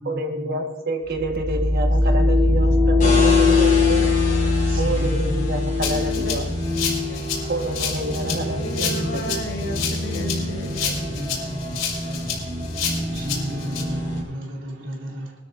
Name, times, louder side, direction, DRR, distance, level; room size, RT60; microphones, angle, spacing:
voice 1, 0.0-4.0 4.8-6.5 7.5-9.3, right 2 dB, 55° right, 3 dB, 1.5 m, -28 dB
sound 1, 1.1-14.2, left 3 dB, 25° right, 1.0 m, -22 dB
sound 2, 3.0-14.2, left 3 dB, 45° left, 5.1 m, -33 dB
voice 2, 3.5-4.1 5.6-6.4 7.1-7.2 8.5-11.3, left 1 dB, 65° left, 3 dB, 1.3 m, -35 dB
voice 3, 4.6-5.9 8.4-8.6 8.9-9.0 11.1-11.7 12.0-12.5 13.1-15.3, equal, 75° right, -1 dB, 2.9 m, -33 dB
Rattle (instrument), 5.8-13.8, left 7 dB, 90° left, 3.8 m, -29 dB
21.5 x 13.0 x 2.6 m, 1.2 s
head